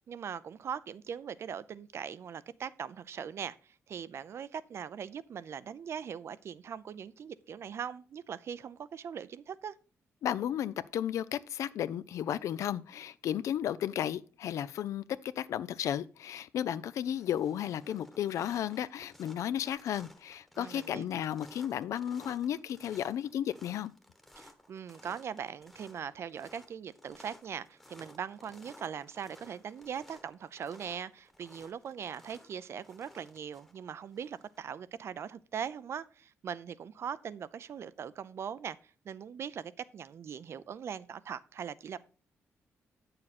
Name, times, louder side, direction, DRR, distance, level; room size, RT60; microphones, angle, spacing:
voice 1, 0.1-9.7 20.6-21.1 24.4-38.8 39.0-42.0, right 7 dB, 60° right, 0.5 m, -41 dB
voice 2, 10.2-23.9, left 10 dB, 80° left, 0.5 m, -34 dB
sound 1, 16.0-16.4 16.7-34.6, left 1 dB, 5° left, 1.1 m, -57 dB
8.6 x 6.7 x 4.2 m
cardioid pair, 110°, 5 cm